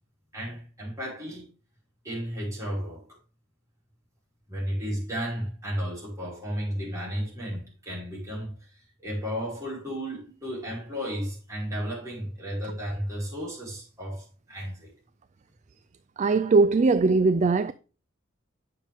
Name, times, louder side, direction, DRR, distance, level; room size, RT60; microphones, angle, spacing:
voice 1, 0.3-1.5 2.0-3.0 4.5-8.5 9.0-14.9, equal, 15° right, 5.5 m, -33 dB
voice 2, 16.2-17.7, right 3 dB, 35° right, 0.3 m, -20 dB
9.3 x 6.8 x 3.6 m
head